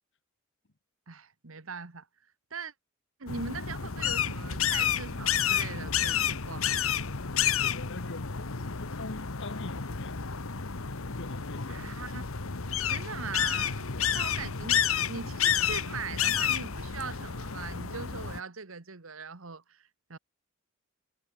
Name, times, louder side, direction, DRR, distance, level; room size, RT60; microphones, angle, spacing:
voice 1, 1.1-2.1 2.5-2.7 3.2-6.7 11.7-12.3 12.9-13.8 14.1-20.2, right 5 dB, 75° right, 1.4 m, -41 dB
sound 1, 3.3-18.4, left 8 dB, 80° left, 1.3 m, -30 dB
voice 2, 7.5-10.3 11.1-11.9 13.9-14.2, left 2 dB, 60° left, 1.5 m, -43 dB
head